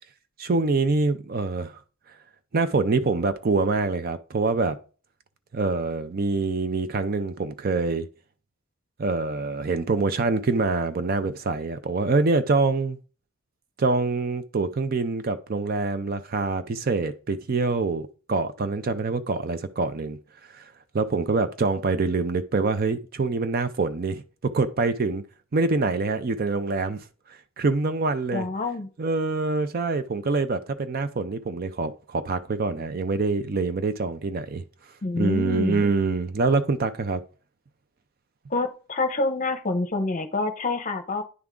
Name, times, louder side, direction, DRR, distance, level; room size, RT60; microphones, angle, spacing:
voice 1, 0.4-1.8 2.5-4.8 5.5-8.1 9.0-13.0 13.8-20.2 20.5-20.7 20.9-25.2 25.5-27.0 27.6-28.5 29.0-34.6 35.2-37.2, right 3 dB, 45° right, 0.4 m, -25 dB
voice 2, 28.3-28.9 35.0-35.8 38.5-41.2, left 2 dB, 35° left, 0.7 m, -27 dB
9.6 x 3.5 x 3.7 m
head